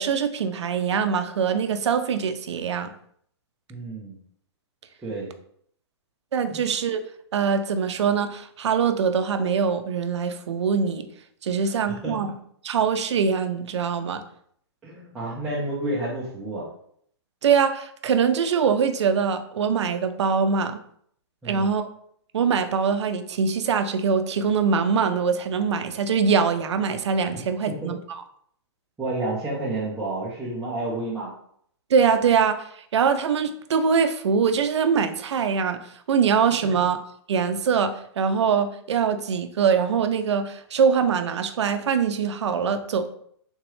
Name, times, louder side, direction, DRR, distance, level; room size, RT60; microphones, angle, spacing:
voice 1, 0.0-2.9 6.3-7.0 7.3-11.1 11.4-12.3 12.6-14.2 17.4-20.8 21.5-21.9 22.3-28.0 31.9-35.8 36.1-37.0 37.3-43.1, right 6 dB, 85° right, 9 dB, 0.5 m, -23 dB
voice 2, 3.7-4.2 5.0-5.3 6.5-6.6 11.6-12.3 14.8-16.7 21.4-21.7 27.8-27.9 29.0-31.3, right 2 dB, 5° right, -9 dB, 0.5 m, -30 dB
3.6 x 3.0 x 3.1 m, 0.65 s
hypercardioid pair, 165°, 14 cm